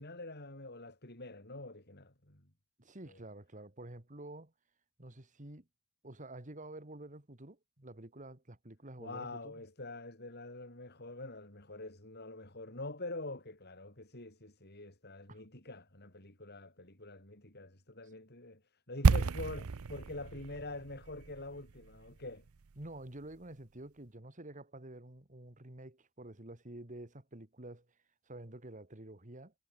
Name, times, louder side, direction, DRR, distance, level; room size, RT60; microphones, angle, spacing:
voice 1, 0.0-2.5 3.1-3.2 9.0-22.4, left 2 dB, 50° left, 5.9 m, -46 dB
voice 2, 2.8-4.5 5.0-5.7 6.0-9.6 15.3-15.4 22.8-27.9 28.3-29.5, right 1 dB, 35° right, 2.3 m, -49 dB
sound 1, 19.0-23.0 23.2-23.4, right 4 dB, 80° right, 0.7 m, -31 dB
head